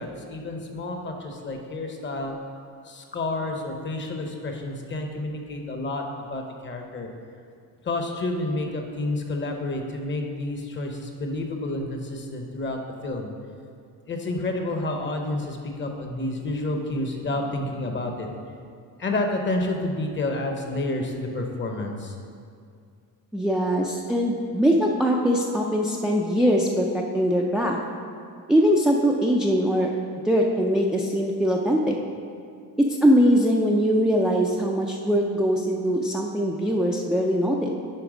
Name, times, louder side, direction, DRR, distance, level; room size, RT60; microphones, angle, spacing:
voice 1, 0.0-2.4 2.9-7.1 7.8-13.3 14.1-18.3 19.0-22.1, left 2 dB, 30° left, 3 dB, 0.9 m, -29 dB
voice 2, 23.3-27.8 28.5-29.9 30.2-32.0 33.0-37.7, equal, ahead, -1 dB, 0.4 m, -22 dB
10.0 x 3.4 x 5.0 m, 2.3 s
cardioid pair, 115°, 36 cm